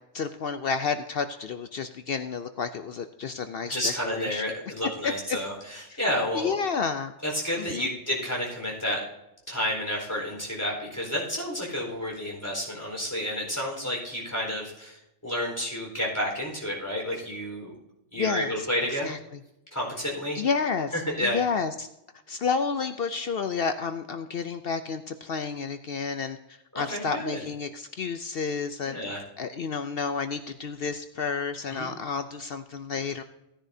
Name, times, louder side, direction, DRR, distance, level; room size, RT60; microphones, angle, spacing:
voice 1, 0.1-4.4 5.0-5.1 5.9-6.0 6.3-7.1 7.6-7.9 18.2-18.5 19.0-19.2 20.4-20.9 21.2-21.9 22.3-26.4 26.7-33.2, left 5 dB, 60° left, 9 dB, 0.7 m, -30 dB
voice 2, 3.6-6.6 7.2-9.0 9.5-17.7 18.1-19.1 19.7-20.4 20.9-21.4 26.7-27.5 28.8-29.2 31.7-31.9, equal, 15° left, -2 dB, 4.3 m, -30 dB
16.5 x 10.0 x 2.7 m, 0.89 s
omnidirectional pair, 1.3 m